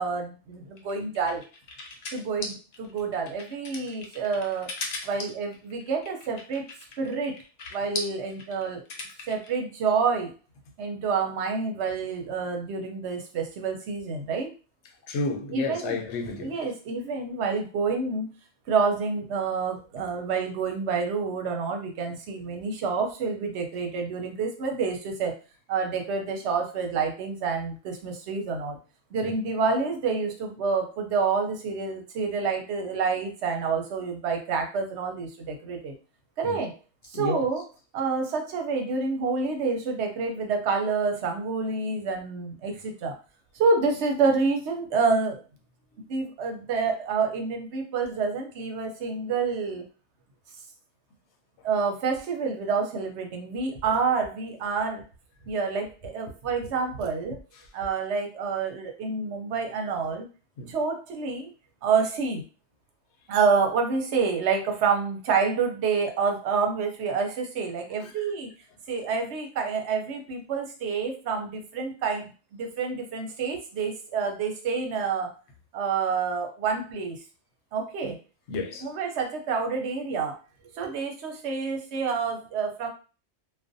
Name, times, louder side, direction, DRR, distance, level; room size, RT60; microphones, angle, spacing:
voice 1, 0.0-1.4 2.1-4.7 5.0-6.6 7.0-7.4 7.7-8.8 9.3-10.3 10.8-14.5 15.5-16.0 16.4-18.3 18.7-25.3 25.7-28.8 29.1-35.9 36.4-36.7 37.0-37.6 37.9-43.2 43.5-45.4 46.1-49.8 51.6-55.0 55.5-57.4 57.7-60.3 60.7-61.5 61.8-62.4 63.3-68.5 68.9-72.2 72.5-75.3 75.7-77.2 77.7-78.2 78.8-80.4 80.7-82.9, right 5 dB, 80° right, 0.9 m, -28 dB
sound 1, 0.8-9.5, left 3 dB, 55° left, 0.4 m, -38 dB
voice 2, 15.1-16.5 29.2-29.3 36.4-36.6 37.1-37.5 60.6-60.7 68.0-68.1 78.0-78.1 78.5-78.9, left 3 dB, 80° left, 0.9 m, -31 dB
2.4 x 2.1 x 2.5 m
omnidirectional pair, 1.1 m